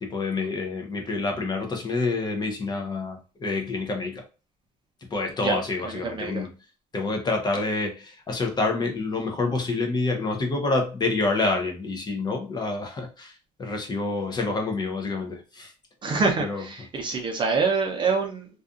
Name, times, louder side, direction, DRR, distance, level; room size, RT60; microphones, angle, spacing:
voice 1, 0.0-4.2 5.1-6.5 6.9-15.7 16.4-16.6, left 3 dB, 25° left, 0.7 m, -27 dB
voice 2, 6.0-6.5 16.0-18.5, right 4 dB, 30° right, 0.6 m, -25 dB
2.6 x 2.3 x 2.4 m
cardioid pair, 120°, 16 cm